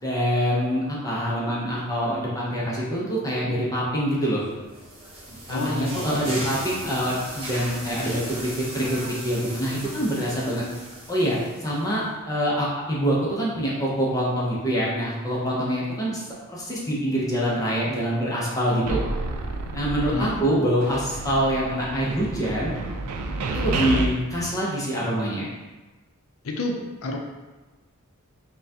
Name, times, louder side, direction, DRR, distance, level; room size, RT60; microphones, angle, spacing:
voice 1, 0.0-4.4 5.3-10.6 11.1-16.2 16.5-19.0 19.7-22.8 23.5-25.5, equal, 15° left, -6 dB, 0.6 m, -25 dB
sound 1, 4.4-11.9, right 1 dB, 25° right, 1.0 m, -37 dB
voice 2, 5.5-6.6 20.1-20.4 26.4-27.2, left 2 dB, 65° left, 2 dB, 0.5 m, -30 dB
sound 2, 18.9-20.5 20.8-24.1, right 2 dB, 85° right, 0.4 m, -30 dB
5.5 x 2.2 x 2.7 m, 1.2 s
head